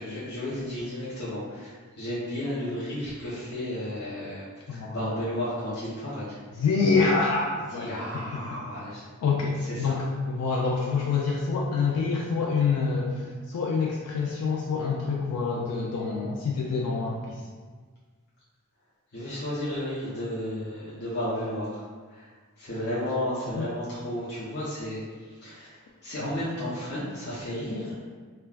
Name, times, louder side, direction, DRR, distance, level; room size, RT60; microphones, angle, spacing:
voice 1, 0.0-6.4 7.5-9.1 9.6-10.0 19.1-28.0, left 1 dB, 50° left, -10 dB, 0.6 m, -33 dB
voice 2, 6.6-8.5 9.2-17.4 23.6-23.7, left 4 dB, 90° left, -3 dB, 0.4 m, -26 dB
3.3 x 2.2 x 2.3 m, 1.5 s
head